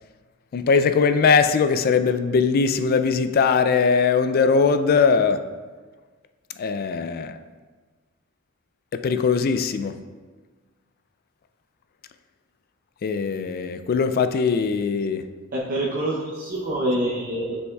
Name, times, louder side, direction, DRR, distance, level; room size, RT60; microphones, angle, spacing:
voice 1, 0.5-5.4 6.6-7.4 8.9-9.9 13.0-15.2, left 5 dB, 45° left, 10 dB, 0.3 m, -20 dB
voice 2, 15.5-17.6, right 1 dB, 45° right, -4 dB, 0.7 m, -26 dB
9.5 x 5.3 x 2.3 m, 1.4 s
head